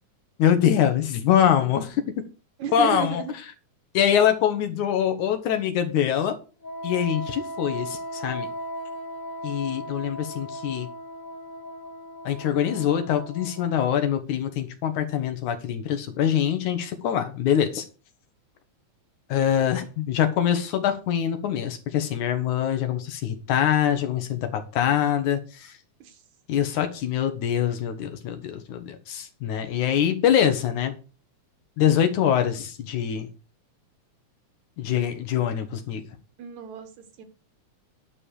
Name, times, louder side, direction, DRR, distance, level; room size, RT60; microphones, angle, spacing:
voice 1, 0.4-2.0 2.7-3.2 3.9-6.4 6.8-8.5 9.4-10.9 12.2-17.8 19.3-25.7 26.5-30.9 31.8-33.3 34.8-36.0, left 9 dB, 80° left, 2.7 m, -24 dB
voice 2, 2.6-3.4 26.0-26.1 36.4-36.9 37.2-37.3, right 8 dB, 75° right, 2.8 m, -32 dB
Wind instrument woodwind instrument, 6.6-14.0, equal, 35° left, 1.4 m, -37 dB
10.5 x 5.7 x 6.5 m
omnidirectional pair, 3.4 m